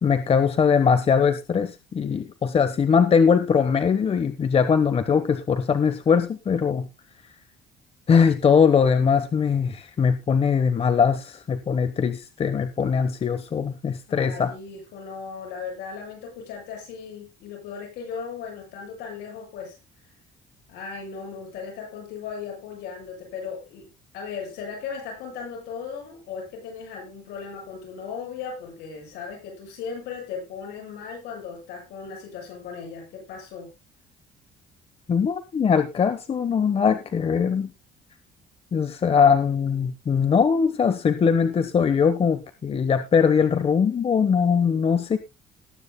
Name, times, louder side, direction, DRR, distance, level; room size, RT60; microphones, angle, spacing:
voice 1, 0.0-6.9 8.1-14.5 35.1-37.7 38.7-45.2, left 6 dB, 35° left, 10 dB, 1.1 m, -21 dB
voice 2, 14.1-19.8 20.7-23.9 24.1-33.7, left 6 dB, 80° left, 0 dB, 7.9 m, -37 dB
19.5 x 9.8 x 2.2 m, 0.25 s
cardioid pair, 110°, 17 cm